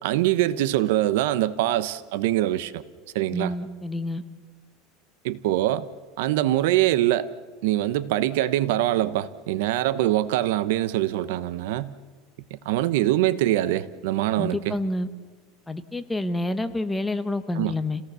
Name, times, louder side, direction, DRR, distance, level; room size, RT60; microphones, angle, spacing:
voice 1, 0.0-2.8 3.1-3.5 5.2-5.9 6.2-7.3 7.6-11.9 12.5-14.8 17.6-17.7, right 14 dB, 75° right, 16 dB, 0.9 m, -23 dB
voice 2, 3.3-4.2 14.4-15.1 15.7-18.0, left 2 dB, 5° left, 10 dB, 1.0 m, -28 dB
29.5 x 17.5 x 6.9 m, 1.5 s
supercardioid pair, 155°, 0 cm